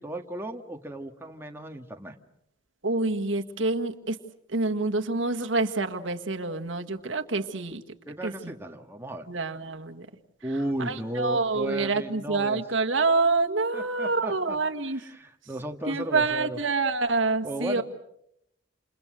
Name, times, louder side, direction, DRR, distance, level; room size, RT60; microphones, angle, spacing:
voice 1, 0.0-2.1 8.1-9.2 10.4-12.6 13.7-14.6 14.9-16.6 17.4-17.8, right 1 dB, 10° right, 3 dB, 1.7 m, -35 dB
voice 2, 2.8-4.2 4.5-7.8 8.2-8.5 9.3-10.1 10.8-15.0 15.9-17.8, right 3 dB, 80° right, 5 dB, 1.8 m, -27 dB
29.0 x 28.5 x 6.5 m, 0.77 s
head